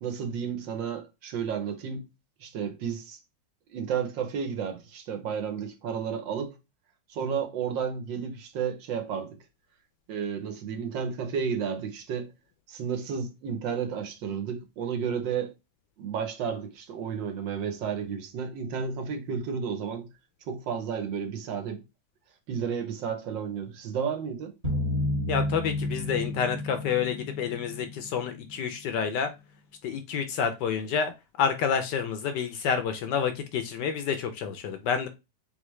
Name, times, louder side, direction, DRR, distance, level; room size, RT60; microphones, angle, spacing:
voice 1, 0.0-2.0 2.4-3.2 3.7-6.5 7.1-9.4 10.1-12.3 12.7-15.5 16.0-20.1 20.5-21.8 22.5-24.5, right 7 dB, 70° right, 1.5 m, -32 dB
sound 1, 24.6-28.4, left 1 dB, 25° right, 1.0 m, -31 dB
voice 2, 25.3-29.3 29.8-31.1 31.4-35.1, left 7 dB, 70° left, 1.1 m, -29 dB
3.7 x 3.6 x 3.1 m
omnidirectional pair, 2.1 m